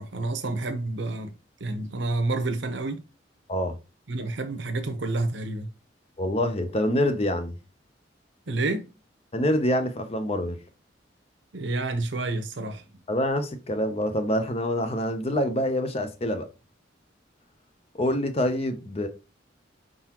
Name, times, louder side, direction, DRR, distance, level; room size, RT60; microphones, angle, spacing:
voice 1, 0.0-3.0 4.1-5.7 8.5-8.9 11.5-12.9, right 2 dB, 70° right, 0.8 m, -29 dB
voice 2, 6.2-7.5 9.3-10.6 13.1-16.5 17.9-19.1, left 1 dB, 35° left, 0.6 m, -26 dB
4.8 x 3.8 x 2.9 m
head